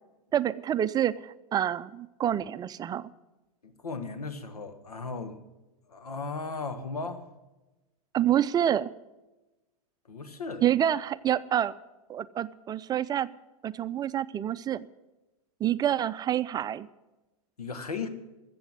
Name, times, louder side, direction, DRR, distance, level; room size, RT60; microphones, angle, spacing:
voice 1, 0.3-3.1 8.1-8.9 10.6-11.7 12.1-13.3 13.6-14.9 15.6-16.9, right 10 dB, 20° right, 15 dB, 0.5 m, -27 dB
voice 2, 3.6-5.4 5.9-7.3 10.1-10.6 17.6-18.1, left 4 dB, 85° left, 10 dB, 1.5 m, -36 dB
14.0 x 7.8 x 9.5 m, 1.1 s
hypercardioid pair, 105°, 19 cm